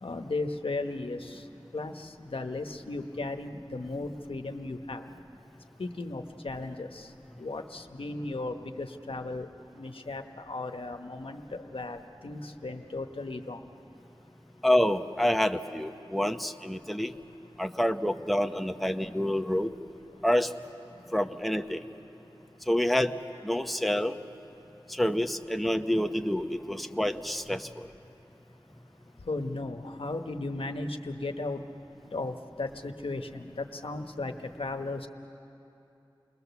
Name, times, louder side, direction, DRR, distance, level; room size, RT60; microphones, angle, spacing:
voice 1, 0.0-1.4 1.7-5.0 5.8-7.1 7.4-9.5 9.7-13.6 29.3-31.6 32.1-35.1, left 2 dB, 85° left, 6 dB, 1.0 m, -36 dB
voice 2, 14.6-17.1 17.6-19.7 20.2-20.5 21.1-21.8 22.7-23.1 23.4-24.1 24.9-27.7, left 1 dB, ahead, 7 dB, 0.8 m, -27 dB
29.0 x 20.5 x 7.0 m, 2.9 s
wide cardioid pair, 55°, 9 cm